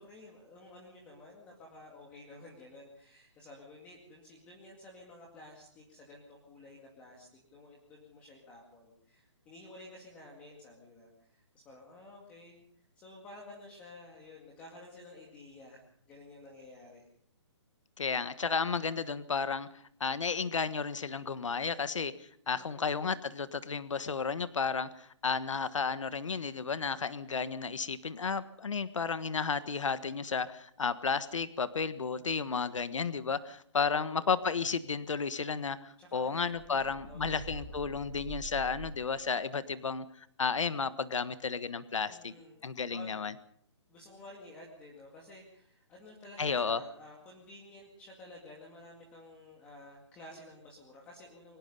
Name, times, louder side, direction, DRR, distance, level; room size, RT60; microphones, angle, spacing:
voice 1, 0.0-12.6 13.0-17.1 22.5-23.0 33.9-34.3 36.0-37.6 42.1-42.6 42.9-43.1 43.9-51.6, left 2 dB, 10° left, -1 dB, 2.2 m, -52 dB
voice 2, 18.0-19.7 20.0-22.1 22.5-42.3 42.6-43.3 46.4-46.8, left 5 dB, 90° left, 13 dB, 1.5 m, -33 dB
sound 1, 36.5-39.3, right 4 dB, 10° right, 5.5 m, -45 dB
23.5 x 20.0 x 5.5 m, 0.63 s
hypercardioid pair, 180°, 16 cm